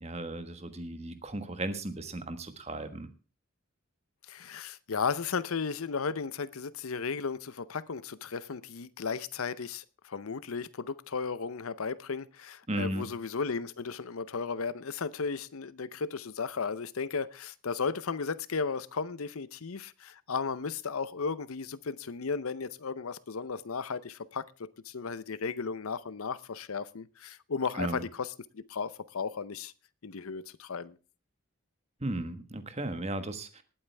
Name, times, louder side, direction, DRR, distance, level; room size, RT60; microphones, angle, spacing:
voice 1, 0.0-3.1 12.7-13.1 27.8-28.0 32.0-33.6, right 1 dB, 30° right, 1.4 m, -35 dB
voice 2, 4.3-29.7 30.0-31.0, left 5 dB, 80° left, 0.7 m, -35 dB
19.5 x 8.8 x 3.4 m
head